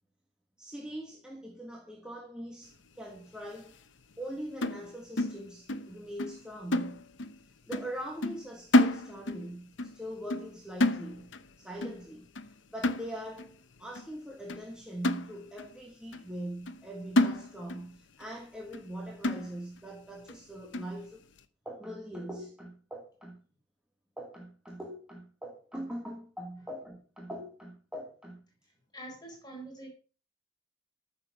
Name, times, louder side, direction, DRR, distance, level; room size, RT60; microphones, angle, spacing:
voice 1, 0.6-3.7 4.2-7.0 7.7-11.3 11.6-12.3 12.7-21.2 21.6-23.4 24.2-28.4, equal, 5° right, 1.6 m, -42 dB
sound 1, 4.6-5.9 6.2-6.4 6.7-7.4 7.7-8.0 8.2-9.5 9.8-10.0 10.3-11.5 11.8-12.1 12.4-12.5 12.8-13.5 14.0-14.1 14.5-14.6 15.0-15.7 16.1-16.2 16.7-16.8 17.2-17.9 18.2-18.3 18.7-18.9 19.2-19.8 20.3-20.4 20.7-21.0, left 1 dB, 70° left, 1.0 m, -29 dB
voice 2, 28.6-29.9, right 1 dB, 20° left, 4.3 m, -46 dB
14.0 x 6.9 x 5.7 m
head